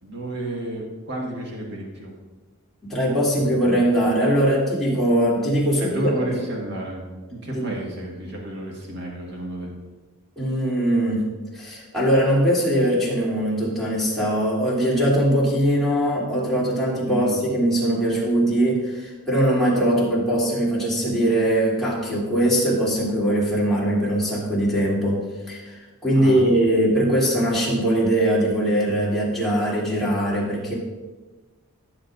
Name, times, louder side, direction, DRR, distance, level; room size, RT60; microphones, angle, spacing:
voice 1, 0.0-2.1 3.5-3.9 5.8-9.7 17.0-17.4 26.1-26.4 26.9-27.0, right 1 dB, 50° right, -2 dB, 1.7 m, -31 dB
voice 2, 2.9-6.1 7.5-7.7 10.4-11.3 11.5-30.7, right 1 dB, ahead, -8 dB, 2.9 m, -21 dB
15.0 x 7.1 x 2.6 m, 1.2 s
head